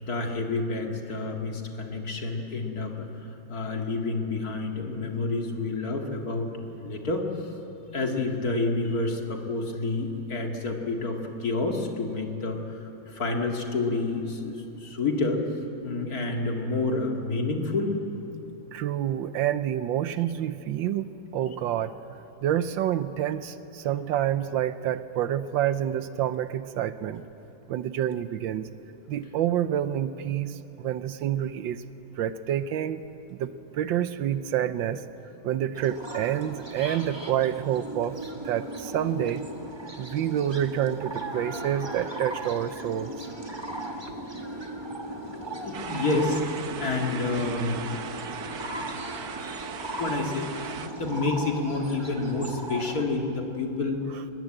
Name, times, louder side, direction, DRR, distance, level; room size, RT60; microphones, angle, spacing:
voice 1, 0.0-3.1 3.5-7.5 7.9-15.4 15.8-18.0 43.3-48.6 50.0-54.3, left 3 dB, 50° left, 2 dB, 2.5 m, -29 dB
voice 2, 18.7-22.0 22.4-27.2 27.7-28.7 29.1-31.8 32.2-33.0 33.3-35.0 35.4-38.2 38.4-39.5 40.0-43.1, right 10 dB, 80° right, 13 dB, 1.4 m, -28 dB
sound 1, 35.7-53.1, right 1 dB, 15° right, 1.5 m, -37 dB
sound 2, 45.7-50.9, right 7 dB, 60° right, 1.4 m, -38 dB
21.5 x 20.5 x 8.9 m, 3.0 s
omnidirectional pair, 2.1 m